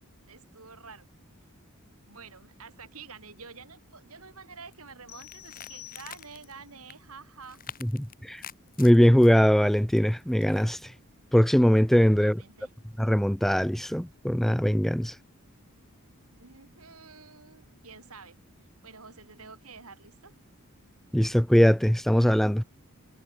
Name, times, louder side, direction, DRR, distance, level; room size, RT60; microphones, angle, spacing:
voice 1, 0.3-1.1 2.1-7.6 12.0-12.7 16.3-18.4 18.8-20.3, right 5 dB, 70° right, 5.5 m, -48 dB
sound 1, 4.7-4.9 5.2-6.5 6.9-7.0 7.4-9.3 10.0-10.7, left 8 dB, 40° left, 6.8 m, -46 dB
sound 2, 5.1-6.6, left 13 dB, 65° left, 6.5 m, -48 dB
voice 2, 8.8-10.8 11.3-12.4 13.0-15.1 21.1-22.6, equal, ahead, 0.3 m, -21 dB
head